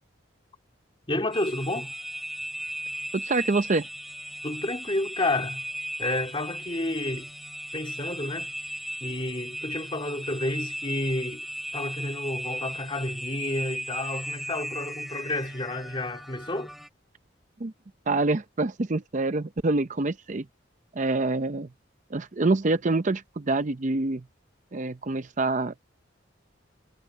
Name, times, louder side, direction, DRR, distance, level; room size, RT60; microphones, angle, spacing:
voice 1, 1.1-1.9 4.4-5.7 6.0-7.3 7.7-8.5 9.0-11.4 11.7-16.7, left 2 dB, 25° left, 2.8 m, -30 dB
sound 1, 1.3-16.9, equal, ahead, 5.3 m, -37 dB
voice 2, 3.1-3.9 17.6-17.7 18.1-20.5 20.9-21.7 22.1-24.2 24.7-25.8, right 2 dB, 40° right, 0.6 m, -26 dB
head